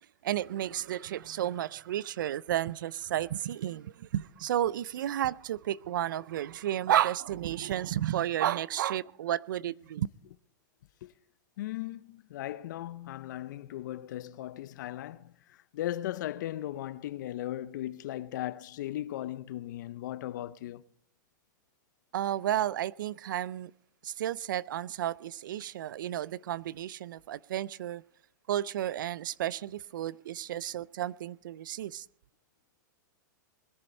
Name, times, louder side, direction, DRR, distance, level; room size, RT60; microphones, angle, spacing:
voice 1, 0.2-10.1 22.1-23.7 24.0-28.0 28.5-32.0, right 12 dB, 75° right, 0.4 m, -32 dB
voice 2, 11.6-15.3 15.7-20.8, left 13 dB, 65° left, 0.7 m, -37 dB
21.0 x 11.0 x 4.3 m
hypercardioid pair, 120°, 11 cm